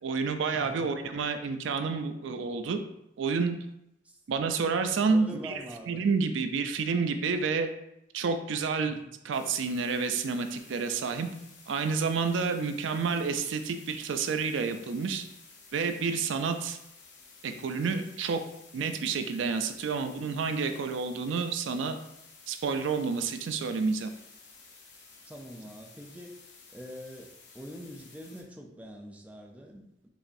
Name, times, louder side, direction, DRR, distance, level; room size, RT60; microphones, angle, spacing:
voice 1, 0.0-2.8 3.2-3.6 4.3-5.6 5.9-7.7 8.1-9.0 9.2-11.3 11.7-15.2 15.7-16.8 17.4-18.4 18.7-22.0 22.5-24.1, right 5 dB, 80° right, 8 dB, 0.4 m, -29 dB
voice 2, 0.5-0.9 4.0-4.2 5.1-6.0 8.9-9.0 25.2-26.4 26.7-30.1, equal, 10° right, 2 dB, 0.3 m, -44 dB
sound 1, 9.3-28.4, left 4 dB, 65° left, 0.8 m, -54 dB
4.9 x 2.5 x 2.6 m, 0.83 s
head